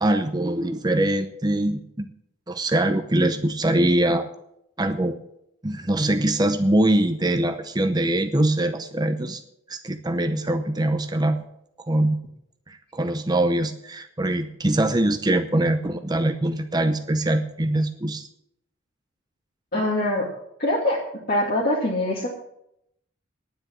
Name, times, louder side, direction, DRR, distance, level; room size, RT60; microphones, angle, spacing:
voice 1, 0.0-2.1 2.5-4.3 4.8-5.2 5.6-9.4 9.7-11.4 11.8-12.2 12.7-18.3, right 1 dB, 20° right, 8 dB, 0.7 m, -23 dB
voice 2, 19.7-20.3 20.6-21.0 21.3-22.3, left 1 dB, 50° left, -4 dB, 2.2 m, -23 dB
10.0 x 9.6 x 7.4 m, 0.77 s
head